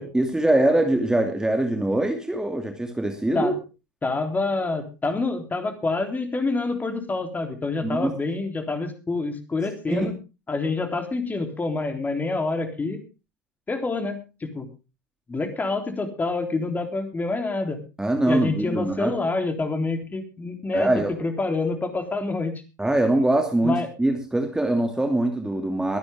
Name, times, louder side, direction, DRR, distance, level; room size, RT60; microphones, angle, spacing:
voice 1, 0.0-3.5 7.8-8.1 9.9-10.1 18.0-19.2 20.7-21.1 22.8-26.0, right 1 dB, 5° right, 3 dB, 2.5 m, -23 dB
voice 2, 4.0-10.1 10.5-13.0 13.7-14.7 15.3-17.8 18.3-20.9 21.2-22.6 23.6-23.9, left 3 dB, 15° left, 6 dB, 3.5 m, -27 dB
23.5 x 9.8 x 3.6 m, 0.30 s
figure-of-eight pair, 80°, 10 cm